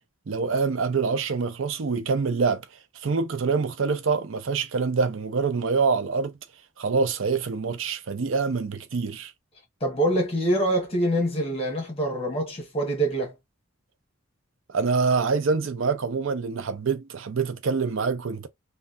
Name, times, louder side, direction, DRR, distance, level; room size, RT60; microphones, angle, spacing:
voice 1, 0.3-2.6 2.9-6.3 6.8-9.3 14.7-18.5, right 4 dB, 70° right, 0.5 m, -25 dB
voice 2, 9.8-13.3, right 1 dB, 30° left, 1.3 m, -25 dB
3.3 x 2.3 x 2.5 m
head